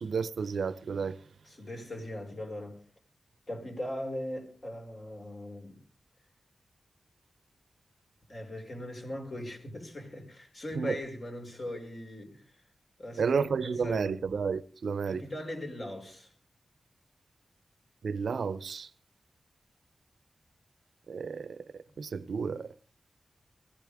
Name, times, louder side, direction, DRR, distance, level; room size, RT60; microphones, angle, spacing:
voice 1, 0.0-1.2 10.8-11.0 13.2-15.2 18.0-18.9 21.1-21.5 22.0-22.7, right 5 dB, 80° right, 0.7 m, -31 dB
voice 2, 1.4-2.8 3.5-5.8 8.3-12.6 13.0-14.2 15.1-16.3, left 1 dB, 40° left, 5.4 m, -40 dB
23.5 x 15.0 x 3.5 m
wide cardioid pair, 115°, 0 cm